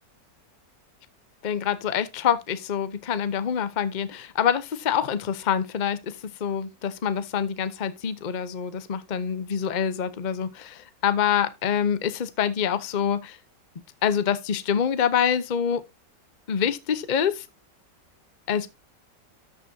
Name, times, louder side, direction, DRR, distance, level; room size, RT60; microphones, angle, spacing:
voice 1, 1.4-13.4 14.0-15.8 16.5-17.4 18.5-18.7, left 8 dB, 40° left, 0.7 m, -26 dB
13.0 x 6.2 x 2.7 m
omnidirectional pair, 1.9 m